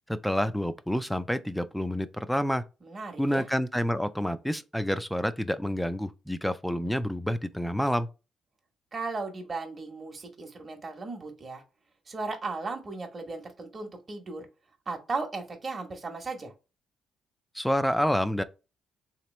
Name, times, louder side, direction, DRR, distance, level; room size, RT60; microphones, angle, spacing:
voice 1, 0.1-2.6 3.2-8.1 17.5-18.4, equal, 5° left, 0.4 m, -28 dB
voice 2, 2.8-3.4 8.9-11.6 12.1-14.5 14.9-16.5, right 3 dB, 35° right, 1.0 m, -36 dB
3.3 x 3.0 x 3.1 m
cardioid pair, 90°, 0 cm